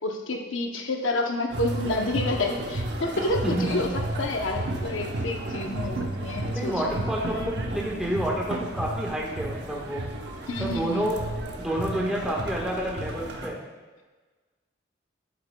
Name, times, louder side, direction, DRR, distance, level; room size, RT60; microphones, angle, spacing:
voice 1, 0.0-3.9 4.2-7.0 10.5-11.1, left 2 dB, 85° left, 2 dB, 0.8 m, -29 dB
sound 1, 1.5-13.5, right 1 dB, 60° right, 0.9 m, -33 dB
voice 2, 3.4-3.8 6.5-10.0 10.6-11.1 11.6-13.6, right 1 dB, 5° right, -3 dB, 1.4 m, -29 dB
12.0 x 7.8 x 2.2 m, 1.3 s
head